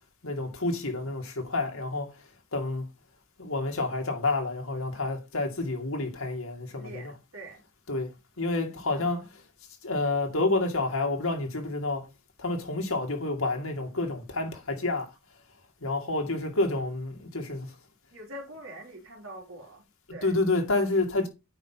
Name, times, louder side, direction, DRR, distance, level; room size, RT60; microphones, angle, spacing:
voice 1, 0.2-2.1 2.5-2.9 3.4-7.1 7.9-8.1 8.4-9.2 9.8-12.1 12.4-15.1 15.8-17.7 20.2-21.3, left 2 dB, 80° left, 2.4 m, -29 dB
voice 2, 6.8-7.6 8.9-9.3 18.1-19.8 20.1-20.3, right 1 dB, 75° right, 3.4 m, -44 dB
9.3 x 5.2 x 4.0 m
head